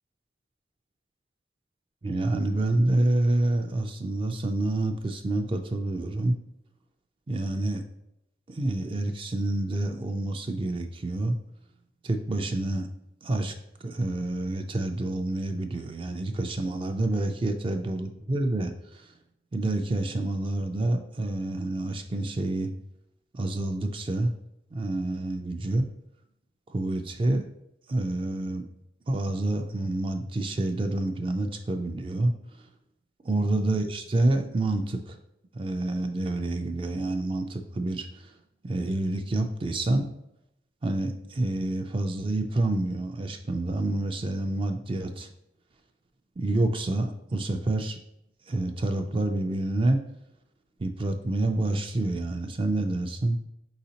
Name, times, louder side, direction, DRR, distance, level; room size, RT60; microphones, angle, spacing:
voice 1, 2.0-6.4 7.3-7.8 8.5-11.4 12.0-12.9 13.2-13.6 13.8-19.1 19.5-22.7 23.3-24.3 24.7-25.9 26.7-27.4 27.9-28.6 29.1-32.3 32.6-32.7 33.2-35.2 35.5-38.3 38.6-40.1 40.8-45.3 46.4-48.0 48.5-50.0 50.8-53.4, right 2 dB, 30° right, 6 dB, 0.3 m, -28 dB
4.8 x 4.0 x 2.8 m, 0.82 s
head